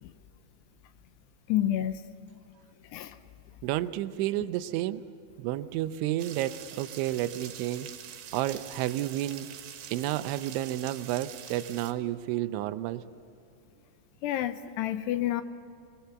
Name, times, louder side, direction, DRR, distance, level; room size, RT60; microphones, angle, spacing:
voice 1, 1.5-2.0 2.9-3.2 14.2-15.4, left 12 dB, 80° left, 10 dB, 2.6 m, -29 dB
voice 2, 3.6-5.0 5.4-7.9 8.3-9.5 9.9-13.0, right 14 dB, 90° right, 12 dB, 3.2 m, -31 dB
sound 1, 6.2-11.9, right 10 dB, 75° right, 3.4 m, -45 dB
25.0 x 21.5 x 7.0 m, 2.8 s
omnidirectional pair, 5.2 m